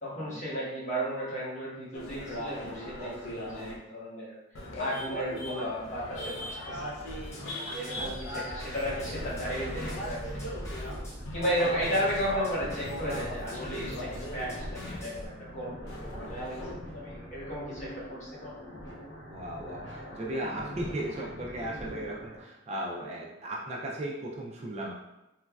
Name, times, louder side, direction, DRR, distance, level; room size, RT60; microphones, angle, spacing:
voice 1, 0.0-4.4 4.8-6.9 7.7-10.6 11.3-16.6 16.9-18.5, equal, 40° left, -7 dB, 1.0 m, -34 dB
sound 1, 1.9-3.8 4.5-11.0 11.3-15.0 15.9-16.7, left 1 dB, 90° left, 0.5 m, -39 dB
sound 2, 7.1-15.3, equal, 15° left, 0.6 m, -44 dB
voice 2, 7.6-8.7 11.5-12.0 19.3-24.9, right 1 dB, 35° right, -3 dB, 0.4 m, -37 dB
sound 3, 8.7-22.4, equal, 65° left, 1.0 m, -44 dB
3.0 x 2.4 x 2.2 m, 0.99 s
head